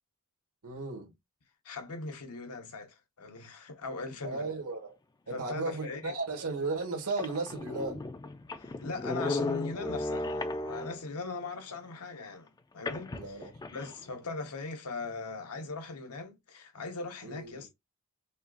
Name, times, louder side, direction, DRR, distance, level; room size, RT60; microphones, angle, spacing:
voice 1, 0.6-1.1 4.2-5.0 5.3-8.0 13.1-13.8 17.2-17.7, right 3 dB, 75° right, 1.4 m, -35 dB
voice 2, 1.6-4.5 5.3-6.1 8.6-17.7, left 3 dB, 90° left, 1.0 m, -40 dB
sound 1, 6.2-6.3 6.8-6.9 7.1-11.2 12.9-13.9, left 2 dB, 15° left, 0.3 m, -35 dB
5.3 x 2.4 x 2.4 m
head